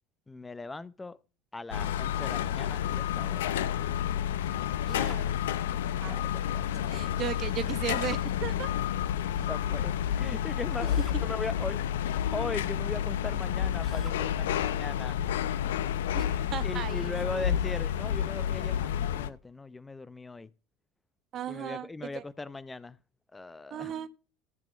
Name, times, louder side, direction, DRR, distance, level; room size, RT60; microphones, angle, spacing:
voice 1, 0.3-1.2 1.5-3.8 6.1-7.0 9.4-15.3 16.6-20.5 21.5-23.0 23.3-23.9, left 3 dB, 15° left, 0.6 m, -39 dB
sound 1, 1.7-19.3, left 10 dB, 80° left, 0.6 m, -30 dB
Drill, 4.9-5.3 7.8-8.3 10.9-11.2 13.8-14.2, right 1 dB, 5° right, 1.8 m, -50 dB
voice 2, 4.9-5.3 6.0-6.2 6.7-8.7 16.1-17.6 21.3-22.2 23.7-24.1, right 10 dB, 50° right, 1.2 m, -37 dB
13.5 x 6.2 x 5.1 m
hypercardioid pair, 70°, 0 cm